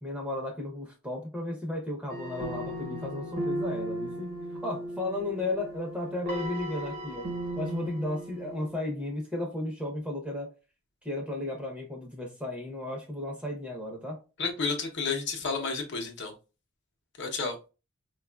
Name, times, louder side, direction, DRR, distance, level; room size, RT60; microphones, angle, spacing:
voice 1, 0.0-7.3 7.6-10.5 11.0-14.2, left 1 dB, 5° right, 0.7 m, -34 dB
sound 1, 2.1-8.7, equal, 45° right, 1.0 m, -36 dB
voice 2, 14.4-16.3 17.2-17.5, left 4 dB, 60° left, 0.8 m, -31 dB
4.6 x 2.3 x 2.3 m
head